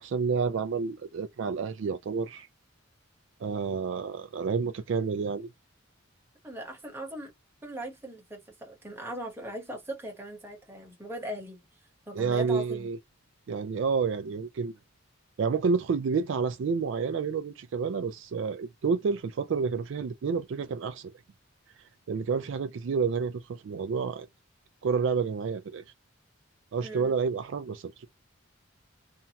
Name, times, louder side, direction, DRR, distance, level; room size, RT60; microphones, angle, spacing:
voice 1, 0.0-2.5 3.4-5.5 12.1-13.0 13.5-14.8 15.4-21.1 22.1-24.3 24.8-25.8 26.7-28.1, right 5 dB, 60° right, 0.3 m, -29 dB
voice 2, 6.4-7.3 7.6-11.6 12.1-12.9 26.8-27.1, equal, 10° right, 1.0 m, -39 dB
2.7 x 2.2 x 2.8 m
head